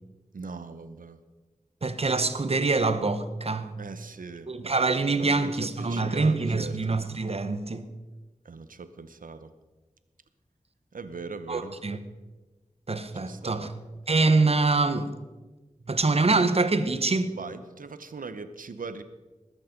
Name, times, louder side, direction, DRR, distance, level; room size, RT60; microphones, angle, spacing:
voice 1, 0.3-1.2 3.8-4.5 5.2-6.8 8.4-9.5 10.9-11.8 13.1-13.8 17.4-19.0, right 4 dB, 80° right, 11 dB, 0.9 m, -40 dB
voice 2, 1.8-3.8 4.5-7.9 11.5-12.0 12.9-13.7 14.1-15.1 15.9-17.4, right 3 dB, 45° right, 11 dB, 1.0 m, -25 dB
20.5 x 8.5 x 5.2 m, 1.2 s
wide cardioid pair, 85°, 14 cm